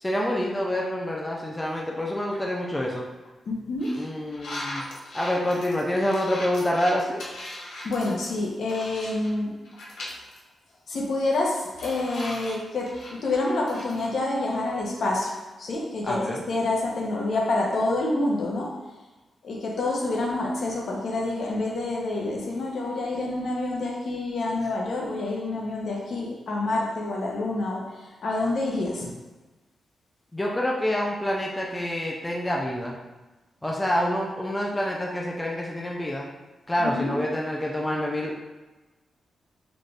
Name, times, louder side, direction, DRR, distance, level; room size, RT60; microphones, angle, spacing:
voice 1, 0.0-3.0 4.0-4.8 5.1-7.2 16.0-16.4 30.3-32.9 33.6-36.3 36.7-38.3, left 1 dB, 10° left, -2 dB, 0.4 m, -27 dB
sound 1, 2.3-2.6 3.1-3.3 3.8-9.4 9.6-10.4 10.7-10.8 11.2-14.1, left 1 dB, 85° left, 0.8 m, -39 dB
voice 2, 3.5-3.9 7.8-9.6 10.9-12.9 13.2-18.8 19.4-29.1 36.8-37.1, left 2 dB, 60° left, -2 dB, 0.8 m, -27 dB
4.0 x 2.4 x 3.4 m, 1.1 s
wide cardioid pair, 130°, 0 cm